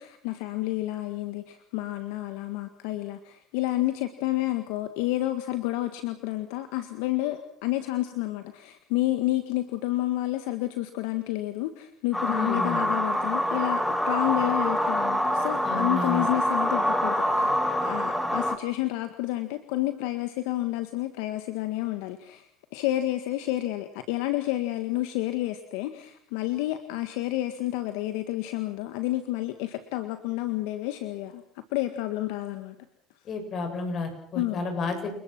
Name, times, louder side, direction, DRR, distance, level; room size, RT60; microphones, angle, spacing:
voice 1, 0.0-13.8 14.1-17.6 17.8-32.8 34.4-34.7, left 16 dB, 75° left, 9 dB, 1.7 m, -30 dB
sound 1, 12.1-18.6, equal, 5° left, 2.8 m, -26 dB
voice 2, 12.3-12.8 15.6-16.3 33.3-35.2, left 3 dB, 45° left, 6 dB, 7.4 m, -31 dB
29.5 x 20.5 x 6.1 m, 0.66 s
supercardioid pair, 90°, 0 cm